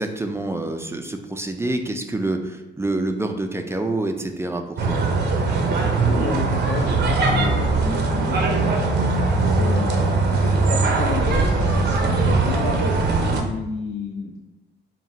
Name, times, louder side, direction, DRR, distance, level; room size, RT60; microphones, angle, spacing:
voice 1, 0.0-5.0, right 2 dB, 15° right, 5 dB, 0.3 m, -27 dB
sound 1, 4.8-13.4, right 3 dB, 60° right, 0.6 m, -20 dB
voice 2, 6.0-8.8 9.4-14.3, left 5 dB, 50° left, 2 dB, 0.5 m, -31 dB
3.9 x 2.2 x 4.1 m, 0.98 s
cardioid pair, 90°, 20 cm